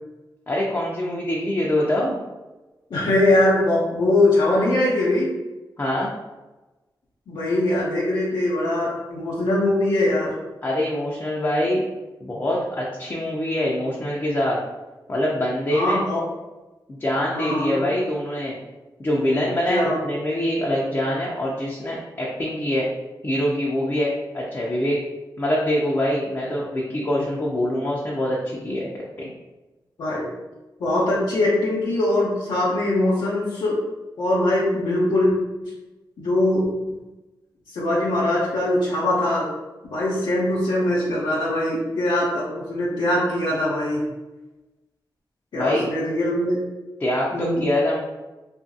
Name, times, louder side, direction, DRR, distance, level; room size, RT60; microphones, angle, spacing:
voice 1, 0.5-2.2 5.8-6.1 10.6-11.9 12.2-14.6 15.1-16.0 16.9-18.6 19.0-22.9 23.2-25.0 25.4-28.9 29.2-29.3 45.5-45.8 47.0-48.0, left 1 dB, 30° left, -4 dB, 0.5 m, -24 dB
voice 2, 2.9-5.3 7.3-10.3 15.7-16.2 17.3-17.9 19.7-20.0 30.0-30.3 30.8-33.8 34.2-35.3 35.6-35.7 36.2-36.6 37.7-39.5 39.8-44.0 45.5-46.6 47.3-47.6, left 1 dB, 80° left, -8 dB, 0.7 m, -22 dB
2.7 x 2.4 x 2.6 m, 1.1 s
cardioid pair, 80°, 8 cm